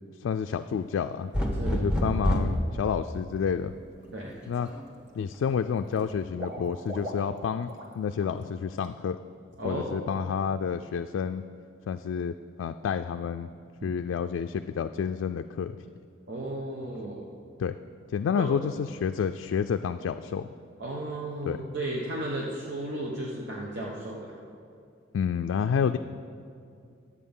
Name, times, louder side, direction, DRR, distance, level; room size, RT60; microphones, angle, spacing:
voice 1, 0.2-1.3 1.7-3.7 4.5-4.7 5.2-7.7 8.0-9.2 9.6-11.4 11.9-12.3 12.6-13.5 13.8-15.8 17.6-17.7 18.1-20.5 21.5-21.6 25.1-26.0, left 7 dB, 80° left, 7 dB, 0.3 m, -29 dB
sound 1, 1.3-2.6 4.2-4.8, equal, 5° right, 1.1 m, -26 dB
Water / Liquid, 3.8-4.1 4.4-5.1 5.4-7.9 8.2-8.4 8.8-8.9, equal, 45° right, 1.4 m, -42 dB
voice 2, 9.6-10.1 16.3-17.2 18.3-18.6 20.8-24.3, right 1 dB, 65° right, -3 dB, 1.1 m, -34 dB
11.0 x 8.3 x 5.5 m, 2.4 s
head